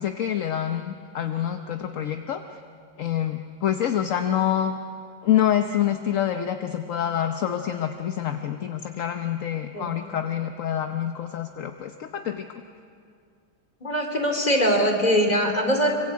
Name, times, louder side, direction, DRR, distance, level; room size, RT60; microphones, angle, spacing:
voice 1, 0.0-2.4 3.0-4.8 5.2-12.5, left 10 dB, 55° left, 7 dB, 1.0 m, -26 dB
voice 2, 13.8-16.0, equal, 20° left, 4 dB, 3.1 m, -22 dB
25.5 x 24.5 x 8.4 m, 2.3 s
omnidirectional pair, 2.1 m